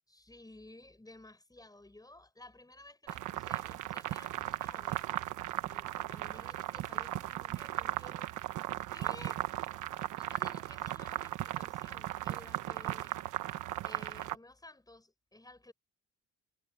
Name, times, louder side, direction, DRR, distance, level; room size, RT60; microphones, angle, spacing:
voice 1, 0.1-8.3 8.9-9.7 10.2-13.2 13.8-15.7, left 2 dB, 10° left, 6.9 m, -55 dB
sound 1, 3.1-14.3, right 14 dB, 85° right, 1.2 m, -37 dB
cardioid pair, 90°, 30 cm